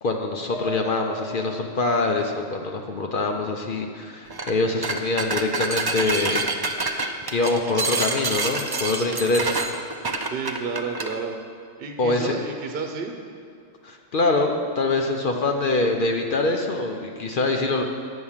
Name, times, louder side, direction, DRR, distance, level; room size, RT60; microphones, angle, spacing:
voice 1, 0.0-6.5 6.9-9.7 12.0-12.3 13.8-17.8, left 2 dB, 55° left, 3 dB, 0.7 m, -24 dB
sound 1, 0.5-3.9 4.3-5.4, right 1 dB, 25° left, 1.0 m, -42 dB
sound 2, 4.3-4.5 4.8-11.1, right 3 dB, 40° right, 0.3 m, -27 dB
voice 2, 10.3-11.4 11.8-13.1, right 5 dB, 55° right, 3 dB, 0.9 m, -31 dB
8.0 x 6.2 x 7.2 m, 2.4 s
omnidirectional pair, 1.2 m